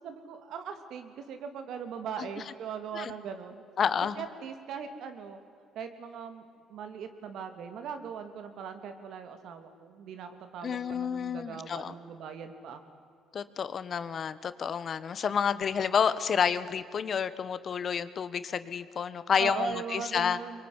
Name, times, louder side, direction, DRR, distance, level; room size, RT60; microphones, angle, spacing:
voice 1, 0.0-3.6 4.2-5.4 5.7-6.4 6.7-12.8 19.4-20.6, right 7 dB, 70° right, 7 dB, 3.0 m, -40 dB
voice 2, 3.8-4.2 10.6-11.9 13.3-20.4, left 7 dB, 50° left, 14 dB, 1.4 m, -29 dB
24.0 x 23.0 x 9.8 m, 2.4 s
cardioid pair, 80°, 0 cm